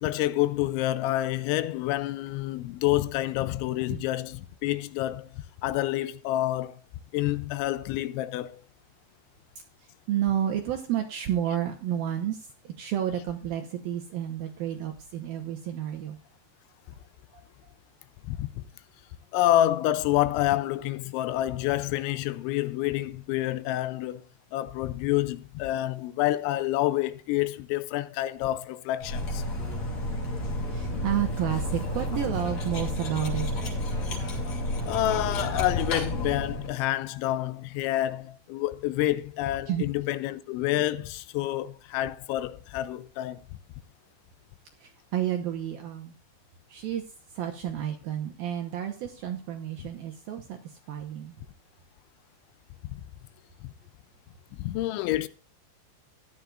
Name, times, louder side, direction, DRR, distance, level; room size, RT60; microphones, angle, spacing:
voice 1, 0.0-6.8 7.1-8.6 18.3-18.6 19.3-24.2 24.5-29.4 34.8-43.4 52.9-53.0 54.6-55.3, left 14 dB, 85° left, 2.9 m, -28 dB
voice 2, 9.8-16.2 16.9-17.0 17.3-17.7 30.6-33.5 39.7-39.9 44.8-46.2 46.7-47.0 47.3-51.4, right 10 dB, 75° right, 2.2 m, -31 dB
Cutlery silverware, 29.0-36.7, left 1 dB, 40° left, 3.3 m, -31 dB
15.0 x 10.5 x 2.5 m
omnidirectional pair, 5.4 m